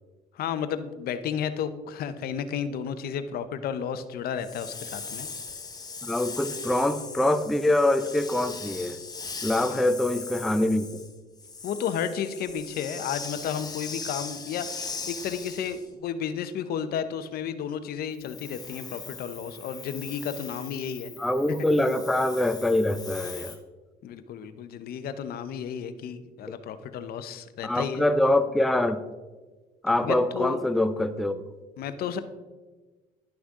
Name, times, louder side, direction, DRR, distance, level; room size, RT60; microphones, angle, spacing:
voice 1, 0.4-5.3 9.6-9.9 11.6-21.1 24.0-28.0 30.0-30.6 31.8-32.2, left 8 dB, 65° left, 11 dB, 0.7 m, -32 dB
Hiss, 4.4-15.9 18.1-23.6, left 4 dB, 25° left, 1.2 m, -40 dB
voice 2, 6.0-9.0 9.4-10.9 21.2-23.5 27.6-29.0 29.8-31.4, left 1 dB, ahead, 10 dB, 0.4 m, -24 dB
11.0 x 6.1 x 3.6 m, 1.3 s
cardioid pair, 110°, 17 cm